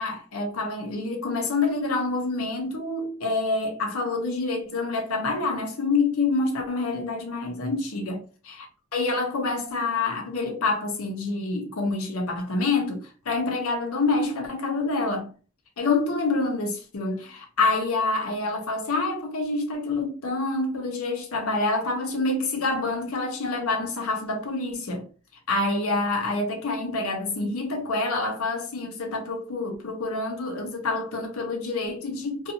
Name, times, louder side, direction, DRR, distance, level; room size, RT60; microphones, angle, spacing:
voice 1, 0.0-8.2 8.9-15.3 15.8-25.1 25.5-32.5, left 3 dB, 85° left, 0.7 m, -27 dB
2.6 x 2.3 x 2.6 m
head